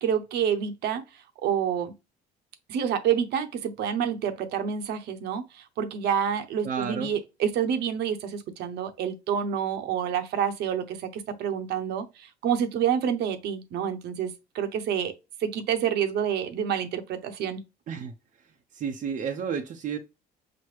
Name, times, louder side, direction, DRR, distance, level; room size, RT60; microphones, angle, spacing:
voice 1, 0.0-1.0 1.4-1.9 2.7-17.6, right 8 dB, 75° right, 0.9 m, -28 dB
voice 2, 6.6-7.1 17.9-18.1 18.7-20.0, right 7 dB, 50° right, 0.6 m, -31 dB
6.0 x 2.1 x 3.2 m
cardioid pair, 110°, 17 cm